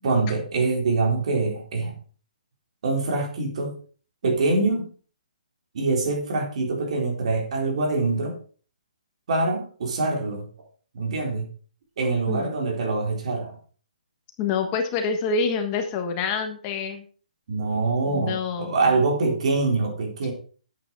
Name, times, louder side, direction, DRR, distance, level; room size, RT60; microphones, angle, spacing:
voice 1, 0.0-2.0 2.8-3.7 4.2-4.9 5.7-8.3 9.3-10.4 10.9-11.5 12.0-13.6 17.5-20.3, right 3 dB, 50° right, 2 dB, 4.0 m, -24 dB
voice 2, 14.4-17.0 18.0-18.7, left 5 dB, 25° left, 5 dB, 1.4 m, -27 dB
9.9 x 8.5 x 4.7 m, 0.41 s
hypercardioid pair, 155°, 4 cm